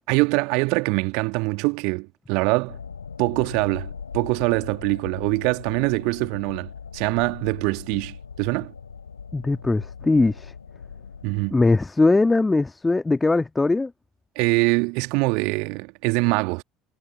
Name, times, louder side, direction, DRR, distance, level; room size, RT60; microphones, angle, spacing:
voice 1, 0.1-2.8 3.2-8.7 11.2-11.6 14.4-16.6, right 30 dB, 60° right, 2.2 m, -24 dB
sound 1, 2.7-11.6, left 6 dB, 80° left, 5.8 m, -39 dB
voice 2, 9.3-10.5 11.5-13.9, left 3 dB, 15° left, 1.7 m, -20 dB
figure-of-eight pair, 60°, 0 cm